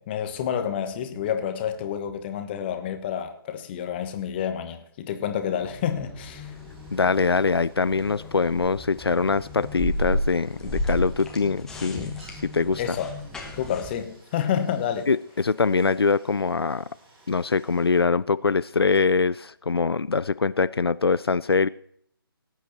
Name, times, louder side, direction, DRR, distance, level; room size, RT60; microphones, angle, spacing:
voice 1, 0.0-6.5 12.8-13.1 13.6-15.1, left 9 dB, 25° left, 1.3 m, -29 dB
sound 1, 5.6-13.9, left 1 dB, 5° left, 1.5 m, -33 dB
Stream, 6.4-18.0, right 2 dB, 30° right, 6.0 m, -56 dB
voice 2, 6.9-12.8 15.1-16.9 17.3-21.7, left 4 dB, 85° left, 0.4 m, -23 dB
18.5 x 8.3 x 4.3 m
figure-of-eight pair, 145°, 13 cm